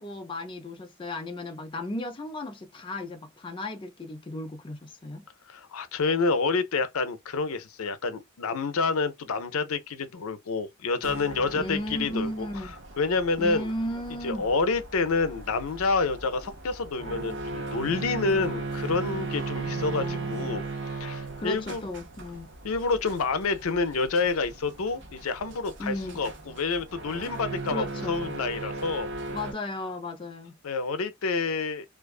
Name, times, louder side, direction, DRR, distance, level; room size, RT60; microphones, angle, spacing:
voice 1, 0.0-5.3 11.5-12.7 13.4-14.5 19.6-20.6 21.4-22.5 25.8-26.2 27.7-28.3 29.3-30.5, left 1 dB, 25° left, 0.4 m, -35 dB
voice 2, 5.5-12.7 13.0-13.7 14.2-20.6 20.9-21.8 22.6-29.1 30.6-31.8, left 4 dB, 80° left, 0.5 m, -28 dB
sound 1, 11.0-29.5, right 3 dB, 55° right, 0.7 m, -37 dB
2.4 x 2.2 x 2.3 m
head